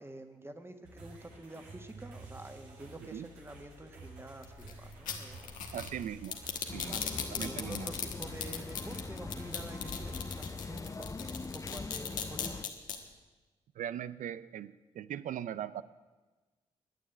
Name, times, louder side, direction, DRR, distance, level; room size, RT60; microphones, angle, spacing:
voice 1, 0.0-5.6 6.8-12.7, right 1 dB, 15° right, 7 dB, 1.7 m, -48 dB
sound 1, 0.8-10.7, right 2 dB, 90° right, 2.3 m, -51 dB
sound 2, 4.4-12.9, left 8 dB, 80° left, 1.4 m, -38 dB
voice 2, 5.7-6.4 6.6-7.0 7.4-7.9 13.8-15.8, right 10 dB, 70° right, 16 dB, 0.6 m, -40 dB
sound 3, 6.7-12.6, left 4 dB, 25° left, 0.5 m, -42 dB
11.5 x 9.4 x 8.1 m, 1.2 s
hypercardioid pair, 40°, 14 cm